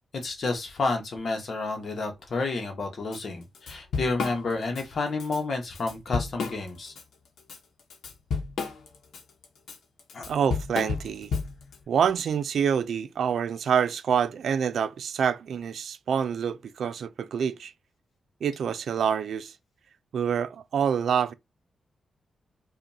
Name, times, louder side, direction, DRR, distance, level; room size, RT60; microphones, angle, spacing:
voice 1, 0.1-6.9 10.1-10.3, left 3 dB, 45° left, 1.1 m, -30 dB
Drum kit / Drum, 3.1-3.2 3.5-4.8 5.2-5.4 5.8-7.0 7.4-11.8, left 5 dB, 85° left, 0.9 m, -32 dB
voice 2, 10.3-11.3 11.9-17.7 18.4-19.5 20.1-21.3, right 7 dB, 65° right, 0.3 m, -26 dB
5.1 x 2.4 x 2.7 m
wide cardioid pair, 175°, 0 cm